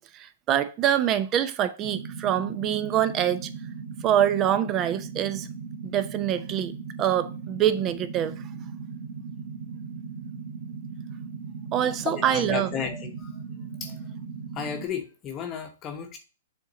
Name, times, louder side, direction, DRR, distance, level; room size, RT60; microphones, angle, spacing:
voice 1, 0.0-3.5 4.0-5.5 5.8-6.7 7.0-8.3 11.7-12.7, right 10 dB, 30° right, 0.7 m, -25 dB
sound 1, 1.8-14.9, right 5 dB, 85° right, 1.5 m, -38 dB
voice 2, 12.0-13.3 13.8-14.0 14.5-16.2, left 7 dB, 25° left, 1.0 m, -33 dB
7.1 x 3.8 x 3.8 m
hypercardioid pair, 125°, 0 cm